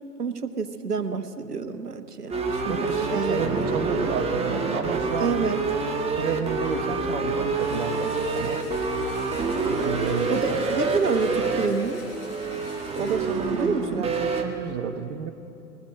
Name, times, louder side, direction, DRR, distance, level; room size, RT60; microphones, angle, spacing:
voice 1, 0.2-3.8 5.2-5.6 7.1-7.5 10.3-12.0 13.5-14.1, right 5 dB, 80° right, 9 dB, 1.3 m, -28 dB
sound 1, 2.3-14.4, right 3 dB, 15° right, 1.5 m, -27 dB
voice 2, 2.7-5.5 6.2-8.7 9.6-10.6 12.9-15.3, right 7 dB, 50° right, 8 dB, 1.4 m, -31 dB
Ringtone, 6.7-6.8 7.4-7.6 7.9-8.1 8.4-8.5 9.1-9.4 9.7-9.8 10.1-10.2 10.8-11.1 11.4-11.5 11.8-11.9 12.5-12.8 13.1-13.2, left 2 dB, 80° left, 4.9 m, -47 dB
Engine / Drill, 7.5-14.1, left 3 dB, 35° left, 4.8 m, -48 dB
21.0 x 20.0 x 6.4 m, 3.0 s
figure-of-eight pair, 100°, 46 cm